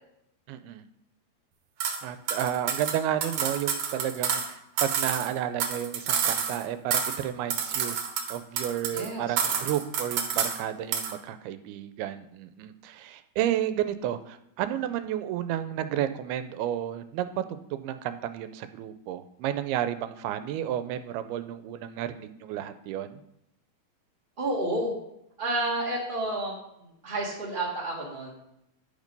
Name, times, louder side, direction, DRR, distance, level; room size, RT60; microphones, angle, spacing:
voice 1, 0.5-0.8 2.0-8.0 8.3-23.2, right 11 dB, 90° right, 11 dB, 2.5 m, -32 dB
sound 1, 1.8-2.0 2.3-4.5 4.8-6.6 6.9-7.3 7.5-9.1 9.4-10.6 10.9-11.2, right 7 dB, 65° right, 2.1 m, -29 dB
voice 2, 8.9-9.5 24.4-25.0 25.4-26.6 27.0-28.3, right 1 dB, 50° right, -2 dB, 0.6 m, -30 dB
11.0 x 5.2 x 5.3 m, 0.81 s
omnidirectional pair, 4.5 m